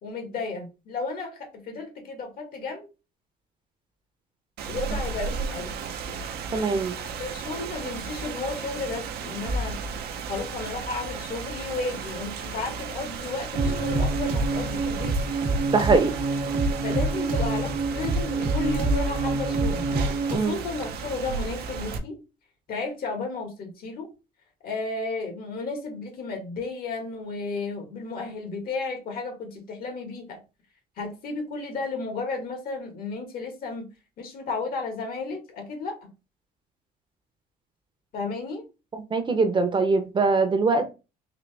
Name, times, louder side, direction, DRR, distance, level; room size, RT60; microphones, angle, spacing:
voice 1, 0.0-2.9 4.7-5.7 7.2-9.8 10.3-15.2 16.8-19.8 20.3-22.2 22.7-24.1 24.6-30.4 31.0-33.9 34.2-36.1 38.1-38.6, left 3 dB, 60° left, 1.6 m, -33 dB
Rain, 4.6-22.0, right 4 dB, 70° right, 0.7 m, -34 dB
voice 2, 6.5-7.0 15.7-16.1 20.3-20.6 39.1-40.9, right 4 dB, 30° right, 0.7 m, -22 dB
sound 1, 13.5-20.4, right 3 dB, 55° right, 1.0 m, -26 dB
3.9 x 2.8 x 3.4 m
cardioid pair, 110°, 17 cm